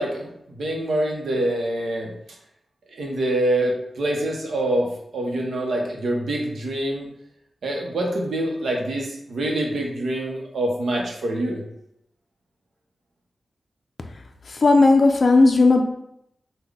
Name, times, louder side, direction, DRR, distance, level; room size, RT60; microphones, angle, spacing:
voice 1, 0.0-2.1 3.0-4.9 5.1-7.1 7.6-11.6, right 1 dB, 90° right, 0 dB, 0.7 m, -25 dB
voice 2, 14.6-15.8, left 3 dB, 55° left, 4 dB, 0.3 m, -15 dB
3.7 x 2.1 x 3.4 m, 0.78 s
wide cardioid pair, 80°, 0 cm